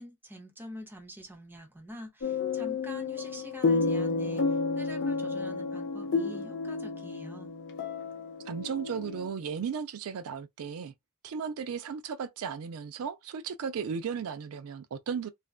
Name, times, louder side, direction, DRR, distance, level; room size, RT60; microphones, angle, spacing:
voice 1, 0.0-7.5, equal, 10° right, 0.7 m, -46 dB
sound 1, 2.2-9.3, left 4 dB, 55° left, 0.5 m, -31 dB
voice 2, 8.4-10.9 11.2-15.3, right 6 dB, 70° right, 0.4 m, -35 dB
2.5 x 2.2 x 2.3 m
head